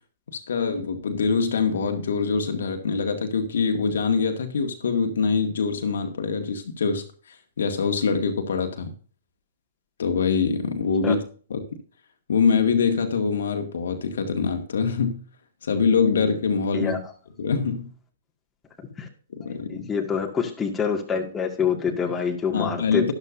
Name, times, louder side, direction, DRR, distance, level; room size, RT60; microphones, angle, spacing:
voice 1, 0.3-7.0 7.6-8.9 10.0-11.2 11.5-11.7 12.3-15.2 15.6-16.9 17.4-17.9 19.3-19.9 22.5-23.1, left 5 dB, 65° left, 5 dB, 2.0 m, -24 dB
voice 2, 19.7-23.1, left 6 dB, 15° left, 2 dB, 2.2 m, -26 dB
12.5 x 11.0 x 2.7 m, 0.41 s
figure-of-eight pair, 120°, 0 cm